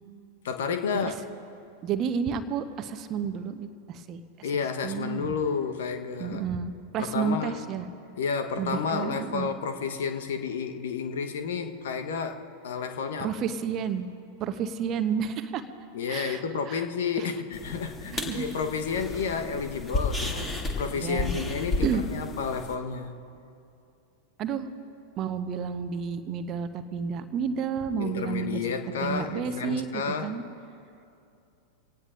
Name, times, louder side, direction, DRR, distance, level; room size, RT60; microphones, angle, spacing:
voice 1, 0.4-1.2 4.4-6.4 7.0-7.6 8.2-13.3 15.9-23.1 28.0-30.4, left 6 dB, 60° left, 7 dB, 1.1 m, -31 dB
voice 2, 1.8-4.5 4.8-5.3 6.2-7.9 8.6-9.5 13.2-14.1 14.4-15.7 16.1-16.8 17.2-17.3 18.1-18.5 20.1-20.4 20.9-21.4 21.8-22.0 24.4-24.7 25.2-28.6 29.0-30.4, right 7 dB, 35° right, 10 dB, 0.9 m, -31 dB
sound 1, 17.5-22.7, left 2 dB, 15° left, 2.5 m, -32 dB
26.5 x 18.0 x 2.6 m, 2.6 s
figure-of-eight pair, 90°, 0 cm